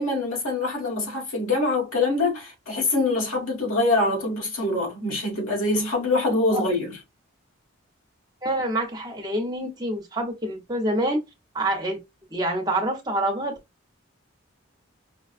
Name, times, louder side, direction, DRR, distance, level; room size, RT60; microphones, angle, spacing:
voice 1, 0.0-7.0, left 2 dB, 85° left, 1.7 m, -24 dB
voice 2, 8.4-11.2 11.5-12.0 12.3-13.5, right 1 dB, 20° right, 0.8 m, -26 dB
5.1 x 2.3 x 2.4 m
head